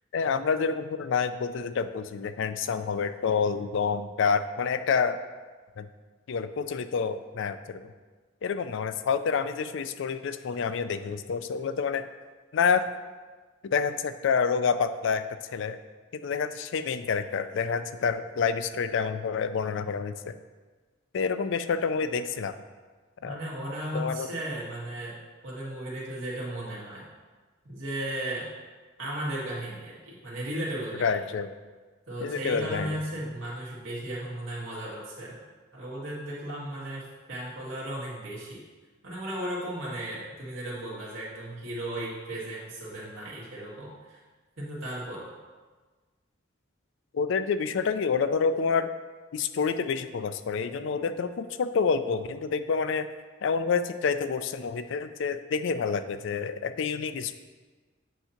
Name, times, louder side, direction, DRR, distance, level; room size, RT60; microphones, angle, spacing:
voice 1, 0.1-5.2 5.8-5.9 6.3-7.8 8.4-12.0 12.5-12.9 13.6-15.8 16.2-20.3 21.1-22.5 23.2-23.4 23.9-24.3 31.0-31.5 32.2-33.0 47.1-48.9 49.3-53.1 53.4-57.3, left 5 dB, 65° left, 11 dB, 0.4 m, -28 dB
voice 2, 23.2-27.1 27.6-28.5 29.0-31.2 32.1-35.4 35.7-38.6 39.0-44.2 44.6-45.3, right 1 dB, 80° right, -7 dB, 2.0 m, -35 dB
8.1 x 2.8 x 5.7 m, 1.4 s
head